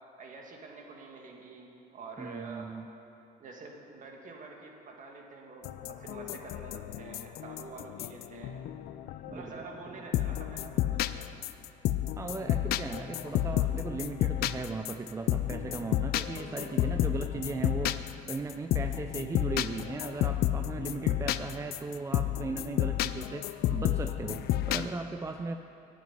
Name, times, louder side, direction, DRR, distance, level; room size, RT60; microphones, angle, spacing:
voice 1, 0.2-2.7 3.4-8.6 9.3-11.3, right 3 dB, 50° right, 1 dB, 2.1 m, -47 dB
voice 2, 2.2-2.9 9.3-10.0 12.2-25.5, right 3 dB, 20° right, 6 dB, 0.5 m, -37 dB
sound 1, 5.6-9.5 10.1-24.9, left 13 dB, 65° left, 0.4 m, -31 dB
9.3 x 8.5 x 9.6 m, 2.8 s
cardioid pair, 110°, 17 cm